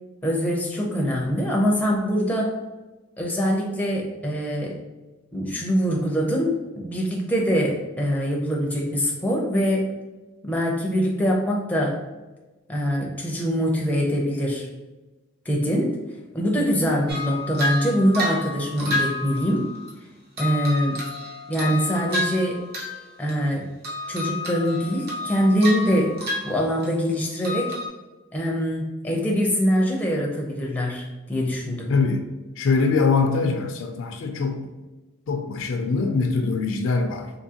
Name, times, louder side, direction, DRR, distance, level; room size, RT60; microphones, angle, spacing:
voice 1, 0.2-2.5 3.2-4.8 5.3-9.9 10.4-12.0 12.7-14.7 15.5-15.9 16.3-19.6 20.4-21.0 21.5-22.6 23.2-23.7 24.1-26.1 26.4-27.7 28.3-31.9, equal, 5° left, -2 dB, 0.5 m, -23 dB
sound 1, 17.1-19.9 20.4-23.0 23.3-23.6 23.8-27.1 27.4-27.9, left 2 dB, 45° right, 0.8 m, -30 dB
voice 2, 31.9-32.3 32.6-34.7 35.3-37.3, left 4 dB, 65° left, 5 dB, 0.4 m, -23 dB
3.6 x 2.7 x 2.8 m, 1.1 s
head